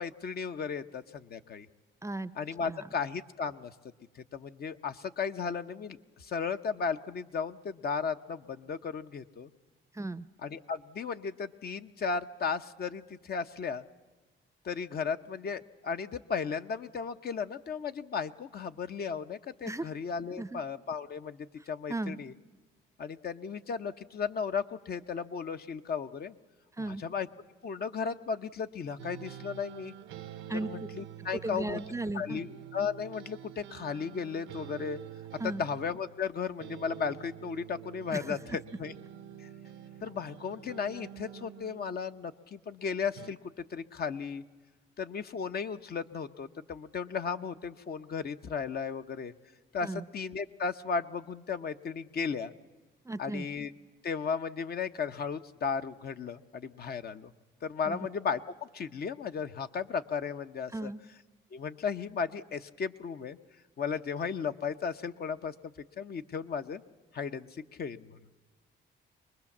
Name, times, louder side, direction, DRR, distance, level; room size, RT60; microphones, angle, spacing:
voice 1, 0.0-1.7 2.4-3.7 4.2-9.5 10.4-13.8 14.6-22.3 23.0-26.4 26.9-27.3 27.6-29.9 30.6-31.8 32.1-32.5 32.7-35.0 35.6-38.9 39.4-39.5 40.0-43.4 43.7-44.4 45.0-49.3 49.7-52.5 53.2-53.7 54.0-57.3 57.6-60.9 61.5-63.4 63.8-66.8 67.1-67.5 67.8-68.2, left 6 dB, 50° left, 8 dB, 0.9 m, -35 dB
voice 2, 2.0-2.3 2.7-2.9 9.9-10.2 19.6-19.9 20.4-20.6 21.6-22.2 26.8-27.0 30.5-30.7 31.4-32.4 35.4-35.6 38.1-38.6 49.8-50.1 53.0-53.5 57.9-58.0 60.7-61.0, right 2 dB, 15° right, 15 dB, 0.6 m, -36 dB
sound 1, 29.0-36.2 36.6-42.0 43.1-43.3, right 11 dB, 90° right, 0.9 m, -47 dB
24.0 x 20.5 x 7.3 m, 1.2 s
cardioid pair, 90°, 20 cm